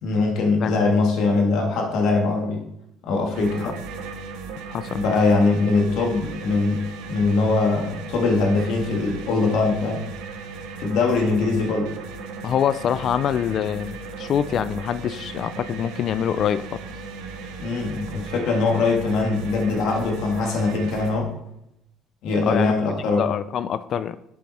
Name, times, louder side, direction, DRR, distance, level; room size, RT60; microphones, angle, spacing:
voice 1, 0.0-2.6 3.0-3.8 4.9-10.0 10.8-11.9 17.6-21.3 22.2-23.3, left 3 dB, 75° left, 1 dB, 2.0 m, -22 dB
sound 1, 3.3-21.2, right 4 dB, 90° right, 1.0 m, -36 dB
voice 2, 12.4-16.8 22.5-22.7 23.2-24.2, left 9 dB, 50° left, 14 dB, 0.3 m, -25 dB
7.4 x 7.4 x 4.3 m, 0.81 s
cardioid pair, 120°, 0 cm